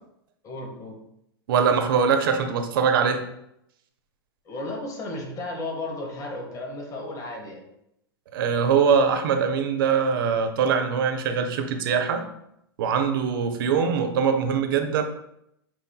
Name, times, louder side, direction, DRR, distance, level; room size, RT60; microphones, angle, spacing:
voice 1, 0.4-1.0 4.4-7.6, left 2 dB, 25° left, 1 dB, 1.0 m, -34 dB
voice 2, 1.5-3.3 8.3-12.2 12.8-15.0, right 6 dB, 60° right, 6 dB, 0.6 m, -22 dB
5.7 x 2.5 x 2.2 m, 0.79 s
hypercardioid pair, 105°, 13 cm